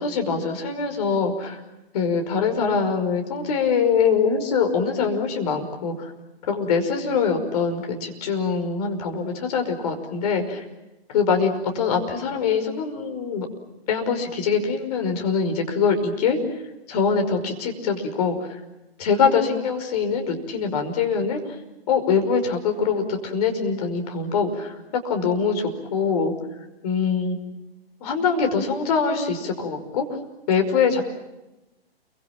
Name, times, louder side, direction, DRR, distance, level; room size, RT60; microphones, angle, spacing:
voice 1, 0.0-1.6 1.9-6.1 6.5-10.6 11.1-13.5 13.9-16.4 16.9-18.5 19.0-21.4 21.9-24.7 25.0-26.3 26.8-27.4 28.0-30.0 30.5-31.0, left 5 dB, 40° left, 4 dB, 5.5 m, -23 dB
30.0 x 24.5 x 7.6 m, 0.98 s
figure-of-eight pair, 120°, 30 cm